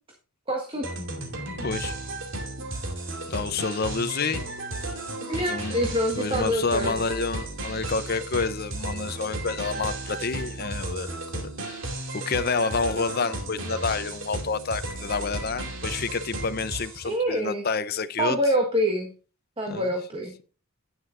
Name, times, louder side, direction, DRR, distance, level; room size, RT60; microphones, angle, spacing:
voice 1, 0.5-0.9 5.3-6.9 17.0-17.6 18.2-19.1 19.6-20.3, equal, 25° right, 1.5 m, -26 dB
sound 1, 0.8-17.1, right 2 dB, 55° right, 2.5 m, -34 dB
voice 2, 1.6-1.9 3.3-4.5 4.8-5.0 5.4-5.8 6.1-11.8 12.1-18.4 19.7-19.9, left 4 dB, 45° left, 0.6 m, -29 dB
10.5 x 9.6 x 2.5 m
head